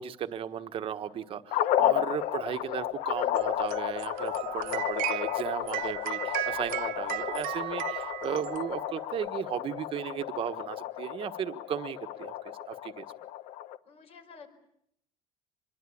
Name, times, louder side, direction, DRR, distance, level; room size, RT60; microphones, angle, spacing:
voice 1, 0.0-12.3 12.7-13.0, right 9 dB, 40° right, 9 dB, 1.4 m, -35 dB
sound 1, 1.5-13.8, left 13 dB, 70° left, 1.1 m, -32 dB
sound 2, 2.1-8.7, left 5 dB, 30° left, 4.3 m, -61 dB
sound 3, 3.3-9.2, right 18 dB, 85° right, 0.9 m, -36 dB
voice 2, 13.8-14.5, left 4 dB, 45° left, 7 dB, 4.9 m, -50 dB
25.5 x 22.0 x 8.7 m, 0.76 s
cardioid pair, 140°, 14 cm